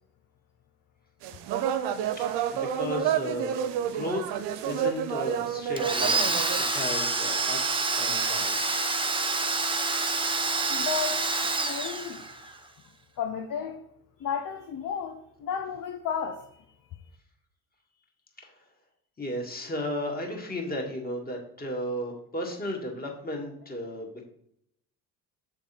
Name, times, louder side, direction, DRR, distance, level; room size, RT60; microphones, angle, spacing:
sound 1, 1.2-6.6, right 9 dB, 60° right, 0.7 m, -29 dB
voice 1, 2.2-3.5 3.8-8.9 18.4-18.5 19.2-24.2, left 1 dB, 20° left, 1.9 m, -35 dB
Domestic sounds home sounds, 5.8-12.6, right 3 dB, 10° right, 0.7 m, -27 dB
voice 2, 10.7-12.2 13.2-13.8 14.2-16.6, left 7 dB, 40° left, 0.7 m, -33 dB
7.0 x 3.5 x 4.3 m
hypercardioid pair, 50°, 49 cm